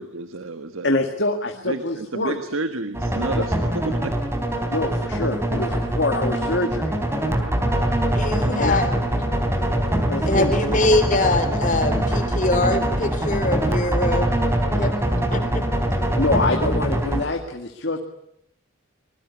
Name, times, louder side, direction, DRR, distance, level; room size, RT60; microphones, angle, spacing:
voice 1, 0.0-1.1 1.6-4.1 7.6-8.0, right 2 dB, 75° right, 10 dB, 1.6 m, -31 dB
voice 2, 0.8-2.4 3.3-3.5 4.7-7.0 8.4-8.8 10.1-10.8 16.2-18.0, left 2 dB, 55° left, 5 dB, 2.1 m, -25 dB
sound 1, 2.9-17.2, right 1 dB, 10° right, 3.7 m, -23 dB
voice 3, 8.1-9.3 10.3-14.4 14.7-14.9 15.3-15.6, left 2 dB, 40° left, 9 dB, 3.8 m, -23 dB
25.5 x 21.5 x 9.8 m, 0.76 s
head